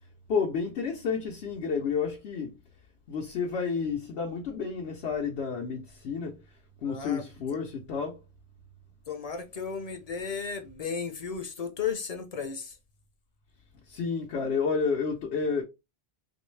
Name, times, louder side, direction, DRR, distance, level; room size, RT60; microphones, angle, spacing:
voice 1, 0.3-2.6 3.1-6.4 6.8-8.2 13.9-15.6, left 5 dB, 80° left, 1.0 m, -30 dB
voice 2, 6.8-7.2 7.5-7.6 9.1-12.8, left 6 dB, 45° left, 0.6 m, -34 dB
3.0 x 2.6 x 3.2 m
omnidirectional pair, 1.1 m